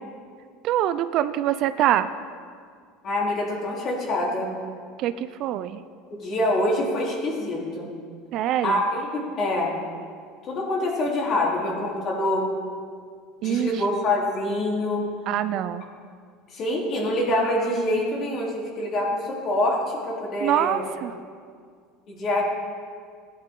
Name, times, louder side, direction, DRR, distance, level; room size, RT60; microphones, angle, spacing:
voice 1, 0.6-2.1 5.0-5.8 8.3-8.8 13.4-13.8 15.3-15.9 20.4-21.2, right 12 dB, 50° right, 12 dB, 0.5 m, -24 dB
voice 2, 3.0-4.5 6.1-7.9 8.6-9.7 10.4-12.5 13.4-15.1 16.5-20.8 22.1-22.4, left 1 dB, 40° left, -3 dB, 3.6 m, -25 dB
17.5 x 11.0 x 3.8 m, 2.1 s
supercardioid pair, 130°, 0 cm